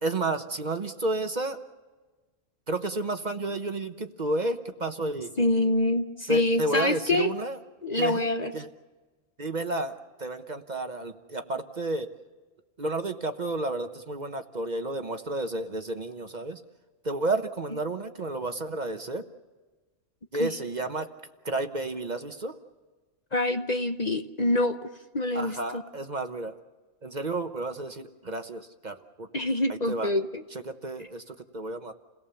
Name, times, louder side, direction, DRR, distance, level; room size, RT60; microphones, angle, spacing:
voice 1, 0.0-1.6 2.7-5.3 6.3-7.6 8.0-8.7 9.4-12.1 12.8-16.6 17.0-19.2 20.3-21.1 21.4-22.5 25.3-26.5 27.0-29.3 29.7-30.1 30.7-31.9, right 2 dB, 40° right, 7 dB, 1.0 m, -31 dB
voice 2, 5.4-7.3 7.8-8.5 20.4-20.5 23.3-25.8 29.3-30.4, left 1 dB, 35° left, 7 dB, 0.9 m, -26 dB
29.5 x 18.0 x 7.0 m, 1.3 s
omnidirectional pair, 1.3 m